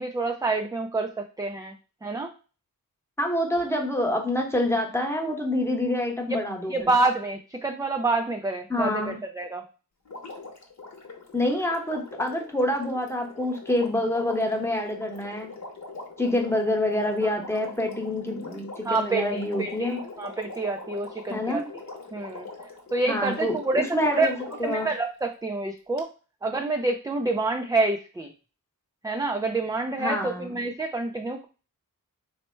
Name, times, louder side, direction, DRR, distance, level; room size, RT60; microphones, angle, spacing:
voice 1, 0.0-1.7 2.0-2.3 6.3-6.4 6.7-9.6 17.2-17.3 18.8-21.6 22.1-22.5 22.9-24.3 24.6-26.1 26.4-28.3 29.0-31.5, right 3 dB, 10° right, 3 dB, 0.3 m, -27 dB
voice 2, 3.2-6.9 8.7-9.2 11.3-15.5 16.2-20.0 21.3-21.7 23.1-24.3 24.6-24.9 30.0-30.6, left 1 dB, 5° left, 1 dB, 1.0 m, -27 dB
Water, 10.1-25.1 26.0-26.1, left 3 dB, 55° left, 1.0 m, -42 dB
4.3 x 2.1 x 4.3 m, 0.34 s
wide cardioid pair, 115°, 35 cm